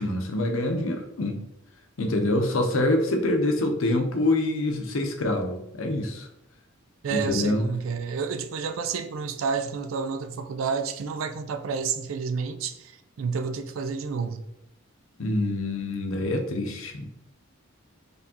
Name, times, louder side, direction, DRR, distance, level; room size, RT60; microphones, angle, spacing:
voice 1, 0.0-1.4 2.0-6.3 7.1-7.6 15.2-17.1, left 1 dB, 75° left, 0.6 m, -26 dB
voice 2, 7.0-12.9 13.2-14.4, right 5 dB, 80° right, 0.4 m, -30 dB
4.3 x 3.3 x 2.8 m
head